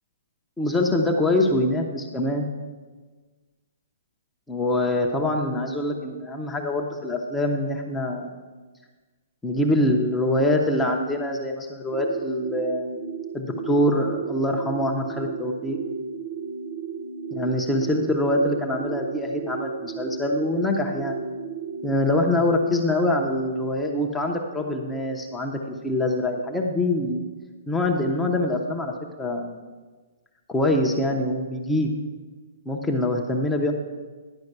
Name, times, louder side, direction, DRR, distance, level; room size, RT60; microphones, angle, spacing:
voice 1, 0.6-2.5 4.5-8.3 9.4-13.0 13.3-15.8 17.3-21.2 21.8-27.2 27.7-29.6 30.5-31.9 32.7-33.7, left 1 dB, 5° left, 1 dB, 0.5 m, -24 dB
sound 1, 11.9-22.0, right 5 dB, 40° right, 0.7 m, -34 dB
10.5 x 5.3 x 6.5 m, 1.3 s
hypercardioid pair, 175°, 0 cm